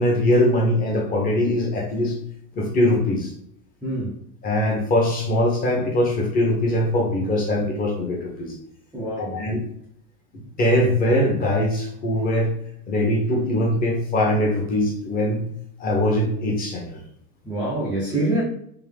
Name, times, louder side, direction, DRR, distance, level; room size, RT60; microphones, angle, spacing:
voice 1, 0.0-2.2 2.5-3.3 4.4-8.5 9.3-9.6 10.6-12.5 12.9-15.4 15.8-17.0, left 1 dB, 20° left, 0 dB, 0.9 m, -21 dB
voice 2, 3.8-4.2 8.9-9.5 17.4-18.4, right 1 dB, 5° right, -8 dB, 0.5 m, -25 dB
3.7 x 2.6 x 3.4 m, 0.71 s
supercardioid pair, 145°, 45 cm